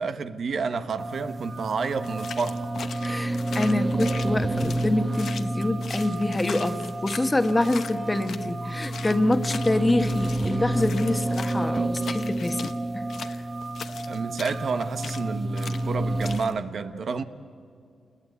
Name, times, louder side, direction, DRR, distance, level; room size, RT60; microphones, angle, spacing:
voice 1, 0.0-2.7 14.1-17.2, right 5 dB, 65° right, 1.1 m, -30 dB
sound 1, 1.0-16.4, right 1 dB, 35° right, 1.1 m, -29 dB
sound 2, 2.0-8.5 8.8-12.8 13.1-15.3 15.6-15.9 16.2-16.5, left 6 dB, 75° left, 1.1 m, -40 dB
voice 2, 3.0-13.0, left 1 dB, 20° left, 1.4 m, -26 dB
28.0 x 20.5 x 8.2 m
cardioid pair, 75°, 0 cm